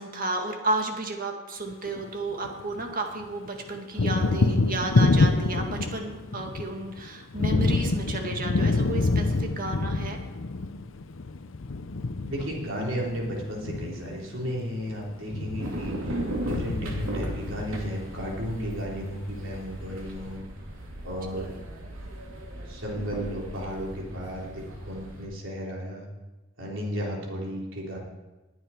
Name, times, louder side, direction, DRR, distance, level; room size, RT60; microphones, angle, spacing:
voice 1, 0.0-10.2 21.3-21.5, right 2 dB, 45° right, 3 dB, 1.9 m, -32 dB
Thunder, 1.7-2.9 3.2-18.5, left 3 dB, 70° left, 0.7 m, -27 dB
voice 2, 12.3-20.4 21.0-21.5 22.7-26.0 26.6-28.0, equal, 65° right, -2 dB, 4.0 m, -34 dB
sound 1, 15.6-25.3, right 1 dB, 80° right, 2.7 m, -37 dB
20.5 x 8.8 x 4.6 m, 1.1 s
head